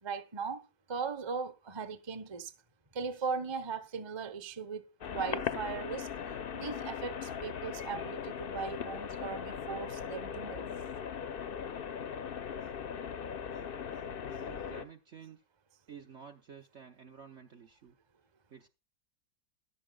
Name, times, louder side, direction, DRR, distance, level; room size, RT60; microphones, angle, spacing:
voice 1, 0.0-2.5 2.9-6.1 6.5-10.7, right 5 dB, 30° right, 0.5 m, -38 dB
sound 1, 5.0-14.8, left 7 dB, 75° left, 0.5 m, -39 dB
voice 2, 14.3-15.4 15.9-18.0 18.5-18.7, right 7 dB, 55° right, 0.8 m, -51 dB
14.0 x 11.5 x 2.3 m
omnidirectional pair, 1.9 m